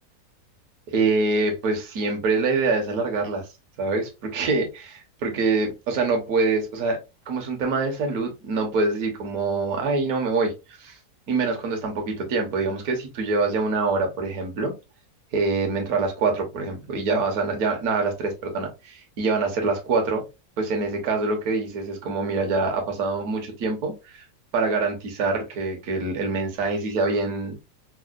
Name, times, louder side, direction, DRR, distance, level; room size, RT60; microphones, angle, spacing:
voice 1, 0.9-3.5 3.8-7.0 7.3-10.5 10.8-11.0 11.3-14.7 15.3-20.2 20.6-24.2 24.5-27.7, right 3 dB, 70° right, 1.4 m, -25 dB
5.2 x 2.1 x 2.4 m
omnidirectional pair, 1.6 m